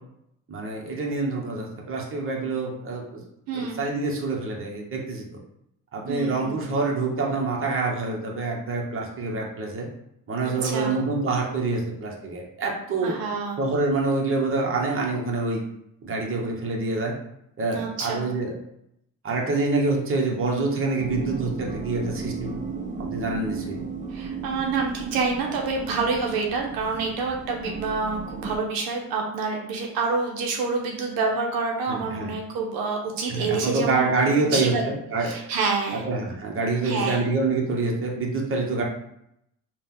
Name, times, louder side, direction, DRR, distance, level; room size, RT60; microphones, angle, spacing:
voice 1, 0.5-3.2 3.5-5.3 5.9-9.9 10.3-13.2 13.6-15.6 16.0-17.1 17.6-18.5 19.2-22.6 22.9-23.8 31.9-32.3 33.3-35.3 35.9-38.8, right 3 dB, 35° right, -1 dB, 1.1 m, -26 dB
voice 2, 3.5-3.9 6.1-6.6 10.4-11.0 13.0-13.6 17.7-18.3 24.1-34.1 34.4-34.9 35.2-36.1 36.8-37.2, right 4 dB, 80° right, 0 dB, 0.8 m, -27 dB
sound 1, 21.0-28.6, right 5 dB, 20° right, 0.6 m, -35 dB
4.0 x 2.4 x 3.7 m, 0.78 s
supercardioid pair, 85°, 35 cm